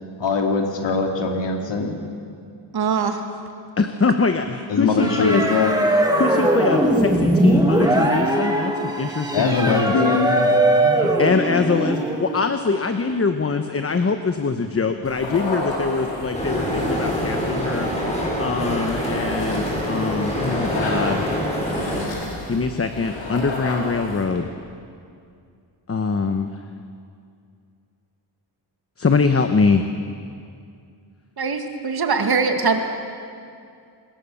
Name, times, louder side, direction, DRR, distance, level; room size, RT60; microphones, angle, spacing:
voice 1, 0.2-1.9 4.7-5.7 9.3-10.3 10.8-11.1, left 4 dB, 75° left, 2 dB, 2.6 m, -21 dB
voice 2, 2.7-3.2 31.4-32.8, right 5 dB, 55° right, 5 dB, 2.2 m, -22 dB
voice 3, 3.8-5.4 6.1-9.9 11.2-21.2 22.5-24.5 25.9-26.5 29.0-29.8, left 4 dB, 30° left, 7 dB, 1.0 m, -23 dB
sound 1, 5.0-12.4, right 1 dB, 10° right, 2.3 m, -20 dB
sound 2, 15.0-24.4, left 2 dB, 90° left, 5.0 m, -32 dB
sound 3, 16.3-22.0, equal, 15° left, 5.1 m, -25 dB
26.5 x 20.5 x 7.0 m, 2.3 s
wide cardioid pair, 130°, 44 cm